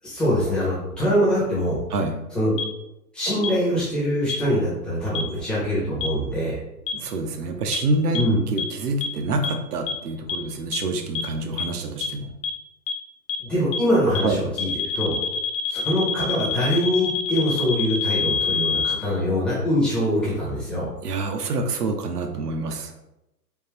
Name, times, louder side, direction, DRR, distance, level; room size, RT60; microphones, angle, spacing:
voice 1, 0.0-1.8 2.3-2.5 3.1-6.6 8.1-8.4 13.4-15.2 15.7-20.9, equal, ahead, -9 dB, 0.7 m, -23 dB
sound 1, 2.6-2.7 3.4-3.5 4.3-4.4 5.2-5.3 6.0-6.1 6.9-7.0 7.7-7.8 8.2-8.3 8.6-8.7 9.0-9.1 9.4-9.5 9.9-10.0 10.3-10.4 10.7-10.8 11.2-11.3 11.6-11.7 12.0-12.1 12.4-12.5 12.9-13.0 13.3-13.4 13.7-13.8 14.2-14.3 14.6-19.0, left 6 dB, 75° left, 0.6 m, -25 dB
voice 2, 6.9-12.3 14.2-14.4 21.0-22.9, right 2 dB, 65° right, 5 dB, 0.7 m, -27 dB
3.6 x 2.7 x 2.9 m, 0.90 s
figure-of-eight pair, 125°, 50 cm